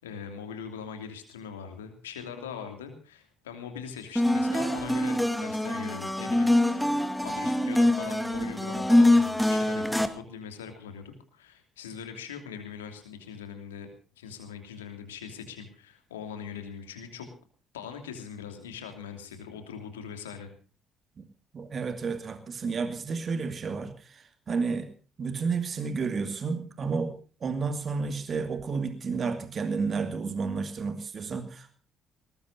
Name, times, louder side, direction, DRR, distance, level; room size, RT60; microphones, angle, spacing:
voice 1, 0.0-13.9 14.2-17.3 17.7-20.5, left 7 dB, 80° left, 6 dB, 2.8 m, -41 dB
sound 1, 4.2-10.1, left 1 dB, 5° left, 2.3 m, -24 dB
voice 2, 21.5-24.9 25.2-27.1 27.4-31.8, right 4 dB, 45° right, 8 dB, 2.4 m, -31 dB
20.5 x 19.5 x 2.8 m, 0.37 s
figure-of-eight pair, 45°, 0 cm